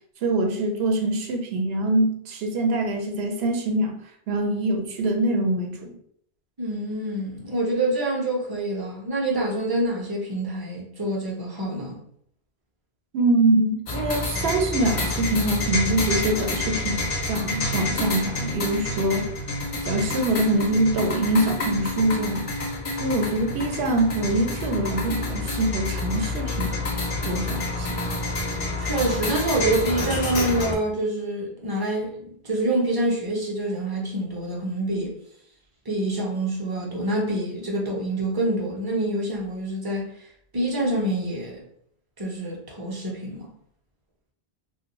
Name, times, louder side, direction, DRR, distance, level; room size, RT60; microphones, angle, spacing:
voice 1, 0.2-3.9 4.3-6.0 13.1-19.3 19.8-22.4 23.0-26.8 27.2-28.0, right 2 dB, 75° right, 0.8 m, -24 dB
voice 2, 6.6-12.0 28.8-35.2 35.9-40.1 40.5-41.6 42.2-43.5, right 1 dB, 30° right, 0.5 m, -26 dB
sound 1, 13.9-30.8, left 2 dB, 50° left, 0.4 m, -28 dB
2.5 x 2.2 x 2.9 m
omnidirectional pair, 1.1 m